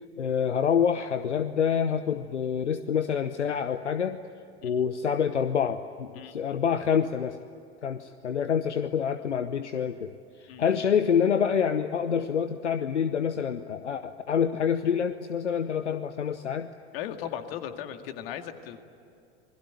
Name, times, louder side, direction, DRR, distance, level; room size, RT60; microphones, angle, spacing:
voice 1, 0.2-4.2 4.6-7.4 7.8-10.1 10.4-16.7, left 7 dB, 75° left, 11 dB, 0.9 m, -27 dB
voice 2, 10.5-10.8 16.9-18.9, left 10 dB, 55° left, 7 dB, 2.1 m, -37 dB
28.0 x 21.0 x 9.7 m, 2.6 s
figure-of-eight pair, 80°, 35 cm